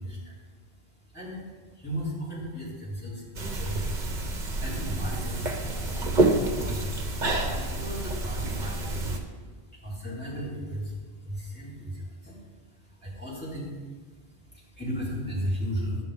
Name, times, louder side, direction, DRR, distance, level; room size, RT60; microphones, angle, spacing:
voice 1, 0.0-16.0, equal, 10° left, -7 dB, 3.0 m, -36 dB
sound 1, 3.3-9.2, right 2 dB, 45° right, 1.0 m, -28 dB
10.0 x 6.9 x 3.9 m, 1.4 s
omnidirectional pair, 1.1 m